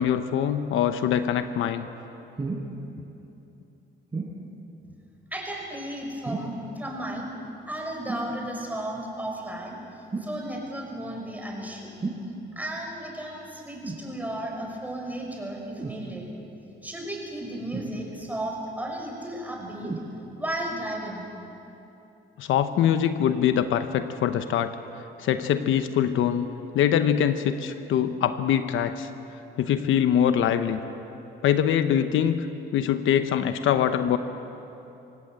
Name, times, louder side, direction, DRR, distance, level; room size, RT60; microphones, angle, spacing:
voice 1, 0.0-1.9 22.4-24.7 25.2-26.5 26.7-29.1 29.6-30.8 31.4-32.5 32.7-34.2, left 9 dB, 80° left, 10 dB, 1.0 m, -23 dB
sound 1, 2.4-2.7 4.1-4.4 6.2-6.6 8.1-8.3 10.1-10.4 12.0-12.3 13.8-14.1 15.8-16.0 17.7-18.3 19.8-20.1 20.9-21.0, right 3 dB, 30° right, 4.5 m, -33 dB
voice 2, 5.3-7.3 7.7-11.9 12.6-16.2 16.8-19.9 20.4-21.2, right 1 dB, 10° right, 0 dB, 5.9 m, -34 dB
26.5 x 17.5 x 7.9 m, 3.0 s
cardioid pair, 90°, 20 cm